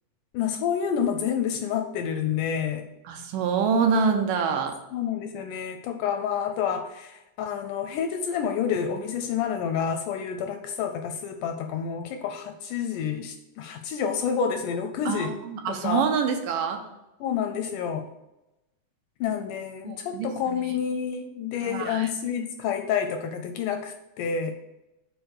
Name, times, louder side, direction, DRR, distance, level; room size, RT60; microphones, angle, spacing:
voice 1, 0.3-2.9 4.9-15.4 15.7-16.1 17.2-18.1 19.2-24.5, left 7 dB, 80° left, 6 dB, 1.9 m, -29 dB
voice 2, 3.1-4.8 15.1-16.8 19.8-20.7 21.6-22.1, right 6 dB, 75° right, 5 dB, 2.3 m, -26 dB
6.3 x 4.8 x 6.4 m, 0.95 s
omnidirectional pair, 4.0 m